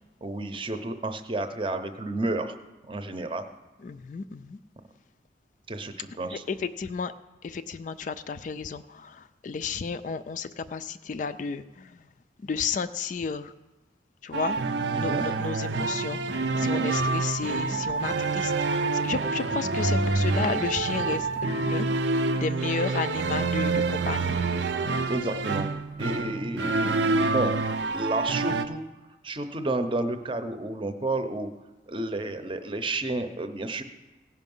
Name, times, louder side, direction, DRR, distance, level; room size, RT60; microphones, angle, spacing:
voice 1, 0.2-2.6 2.8-3.5 5.7-6.4 14.9-15.3 16.5-16.9 25.1-25.7 26.0-27.6 27.9-28.8 29.2-31.5 31.9-33.8, right 2 dB, 30° right, 8 dB, 0.7 m, -31 dB
voice 2, 3.8-4.6 6.3-7.1 7.4-12.1 12.4-13.5 14.2-16.2 16.6-24.4, left 5 dB, 45° left, 12 dB, 0.3 m, -33 dB
sound 1, 14.3-28.7, right 3 dB, 80° right, 0.6 m, -27 dB
16.5 x 5.8 x 5.4 m, 1.1 s
head